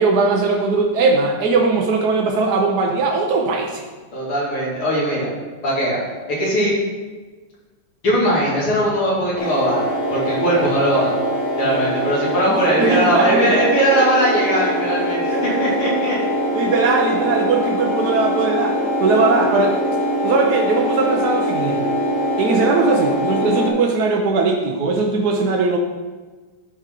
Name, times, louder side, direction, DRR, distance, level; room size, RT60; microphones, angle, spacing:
voice 1, 0.0-3.8 11.6-11.8 12.5-13.6 13.9-14.0 15.3-15.7 16.5-19.8 20.2-21.9 22.4-25.8, right 3 dB, 65° right, 0 dB, 1.0 m, -19 dB
voice 2, 4.1-5.3 5.6-6.0 6.3-6.7 8.0-11.1 11.6-16.2, right 1 dB, 75° left, -6 dB, 3.2 m, -20 dB
sound 1, 9.4-23.7, equal, 35° left, 2.0 m, -22 dB
11.5 x 4.3 x 3.8 m, 1.3 s
omnidirectional pair, 2.4 m